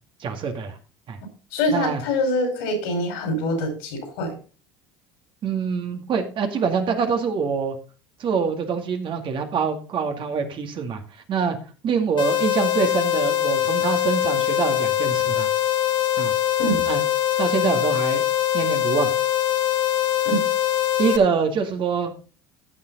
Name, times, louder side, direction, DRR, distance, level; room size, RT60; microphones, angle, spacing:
voice 1, 0.2-0.8 1.1-1.2 1.7-2.0 5.4-7.7 8.2-11.0 11.3-11.6 11.8-15.5 16.2-16.3 16.9-17.0 17.4-18.2 18.5-19.1 21.0-22.1, right 6 dB, 45° right, 5 dB, 2.2 m, -24 dB
voice 2, 1.5-4.3 16.6-16.9 20.2-20.4, left 1 dB, 75° left, 5 dB, 5.0 m, -24 dB
sound 1, 12.2-21.2, left 12 dB, 45° left, 1.6 m, -22 dB
15.0 x 5.9 x 4.0 m, 0.36 s
hypercardioid pair, 75°, 12 cm